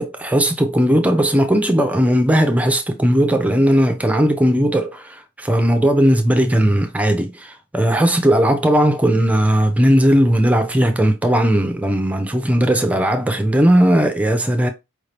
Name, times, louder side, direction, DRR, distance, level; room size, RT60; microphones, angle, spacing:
voice 1, 0.0-14.7, equal, 5° right, 0.5 m, -17 dB
4.9 x 2.7 x 3.3 m
head